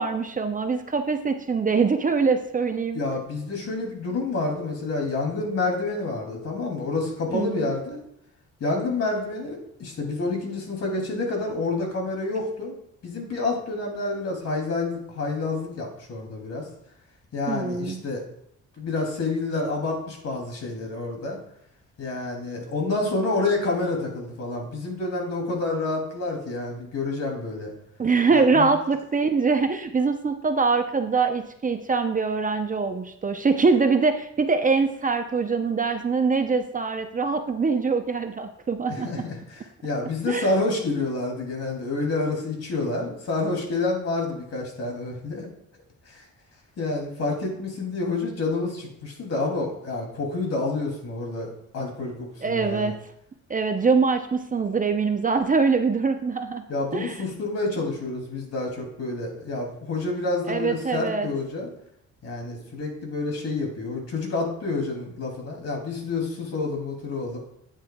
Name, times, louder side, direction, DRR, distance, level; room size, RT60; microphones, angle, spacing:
voice 1, 0.0-3.0 7.3-7.7 17.5-18.0 28.0-39.2 40.3-40.6 52.4-53.0 53.5-56.6 56.9-57.2 60.5-61.3, right 4 dB, 25° right, 7 dB, 0.6 m, -23 dB
voice 2, 2.9-8.0 8.6-12.7 13.0-16.7 17.3-18.2 18.8-21.4 22.0-27.7 28.3-28.7 38.9-45.5 46.1-46.2 46.8-52.9 56.7-61.7 62.2-67.4, left 3 dB, 55° left, 0 dB, 2.7 m, -28 dB
8.9 x 8.0 x 2.3 m, 0.74 s
cardioid pair, 90°, 30 cm